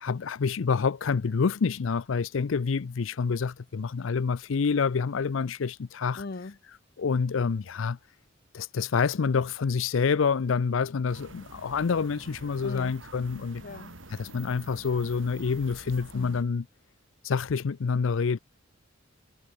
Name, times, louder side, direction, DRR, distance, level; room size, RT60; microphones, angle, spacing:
voice 1, 0.0-6.2 7.0-8.0 8.5-13.6 14.1-16.6 17.2-18.4, left 5 dB, 80° left, 0.5 m, -27 dB
voice 2, 6.2-6.6 12.6-12.9 13.6-13.9 16.1-16.4, left 3 dB, 55° left, 0.8 m, -39 dB
sound 1, 11.1-16.4, right 2 dB, 75° right, 5.3 m, -47 dB
head